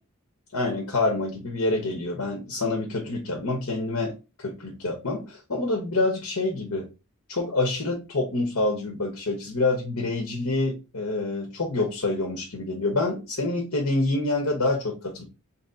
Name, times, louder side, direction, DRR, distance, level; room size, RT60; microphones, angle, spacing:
voice 1, 0.5-4.1 4.4-6.9 7.3-15.2, left 2 dB, 75° left, 0.9 m, -27 dB
3.1 x 2.8 x 3.6 m
head